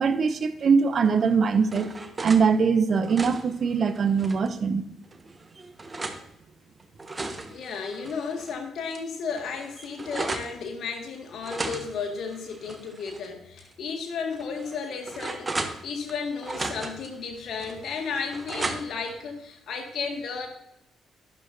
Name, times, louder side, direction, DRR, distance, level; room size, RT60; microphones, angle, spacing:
voice 1, 0.0-4.9, right 5 dB, 50° right, 10 dB, 0.9 m, -22 dB
sound 1, 1.2-2.5 2.9-4.5 5.1-6.2 6.8-8.5 8.9-9.0 9.3-10.5 11.4-13.3 13.6-13.7 14.3-16.1 16.4-17.1 17.6-19.1, right 3 dB, 25° right, 1.3 m, -36 dB
voice 2, 7.5-20.5, left 5 dB, 60° left, 4 dB, 1.9 m, -33 dB
12.0 x 10.5 x 2.7 m, 0.80 s
figure-of-eight pair, 45°, 0 cm